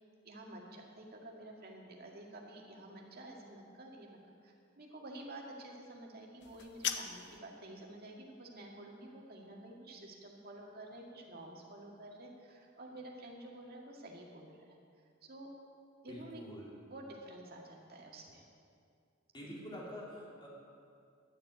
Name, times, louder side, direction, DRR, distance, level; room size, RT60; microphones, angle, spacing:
voice 1, 0.2-14.8 15.2-15.5 16.0-16.4 16.9-18.5, right 1 dB, 50° right, -1 dB, 2.0 m, -50 dB
sound 1, 6.4-7.4, left 9 dB, 60° left, 0.7 m, -39 dB
voice 2, 16.1-16.7 19.3-20.5, equal, 25° left, -5 dB, 3.1 m, -46 dB
11.5 x 7.7 x 8.1 m, 2.3 s
head